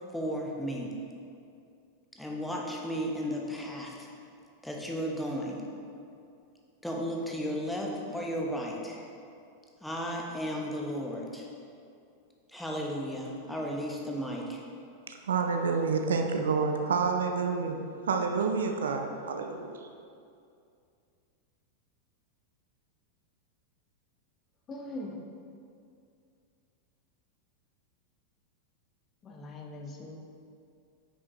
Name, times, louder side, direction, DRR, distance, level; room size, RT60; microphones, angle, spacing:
voice 1, 0.1-0.9 2.1-4.1 4.6-5.7 6.8-9.0 9.8-11.5 12.5-14.6, equal, 5° left, -2 dB, 1.1 m, -34 dB
voice 2, 15.1-17.8 18.0-19.7, right 5 dB, 65° right, 4 dB, 0.6 m, -28 dB
voice 3, 24.7-25.2 29.2-30.2, left 1 dB, 25° left, 1 dB, 0.9 m, -41 dB
9.4 x 6.1 x 3.1 m, 2.4 s
figure-of-eight pair, 90°, 0 cm